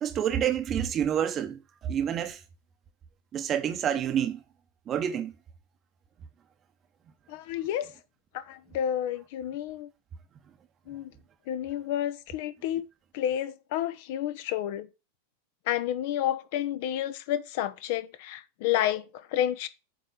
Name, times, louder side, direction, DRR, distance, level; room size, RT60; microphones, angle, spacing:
voice 1, 0.0-2.4 3.3-4.4 4.9-5.3, right 9 dB, 30° right, 0.9 m, -28 dB
voice 2, 7.3-7.9 8.3-9.9 10.9-11.1 11.5-12.9 13.1-14.9 15.7-19.0 19.3-19.7, left 11 dB, 50° left, 0.8 m, -30 dB
7.7 x 4.5 x 6.5 m
figure-of-eight pair, 90°, 0 cm